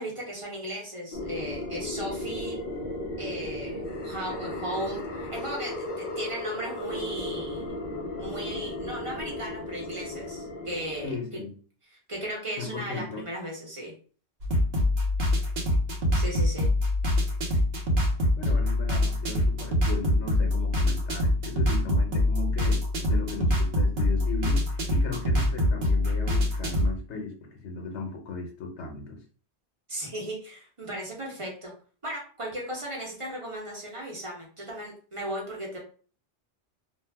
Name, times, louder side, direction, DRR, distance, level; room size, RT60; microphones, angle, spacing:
voice 1, 0.0-2.6 3.2-7.7 8.2-11.2 12.1-13.9 16.1-16.7 29.9-31.7 32.0-35.8, right 1 dB, 30° right, -2 dB, 0.8 m, -36 dB
sound 1, 1.1-11.2, left 1 dB, 55° left, 0.7 m, -35 dB
voice 2, 11.0-11.5 12.6-13.2 18.4-29.2, left 3 dB, 80° left, 2 dB, 1.0 m, -36 dB
sound 2, 14.4-26.9, left 1 dB, 65° right, 0.9 m, -25 dB
2.4 x 2.0 x 3.3 m, 0.41 s
omnidirectional pair, 1.1 m